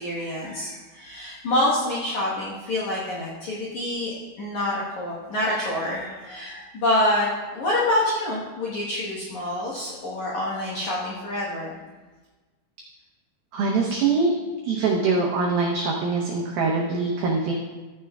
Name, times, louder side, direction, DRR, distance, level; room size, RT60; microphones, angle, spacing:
voice 1, 0.0-11.8, left 1 dB, 80° left, -7 dB, 1.7 m, -27 dB
voice 2, 13.5-14.3 14.6-17.5, right 4 dB, 85° right, -2 dB, 2.0 m, -23 dB
15.0 x 9.5 x 2.3 m, 1.3 s
omnidirectional pair, 5.5 m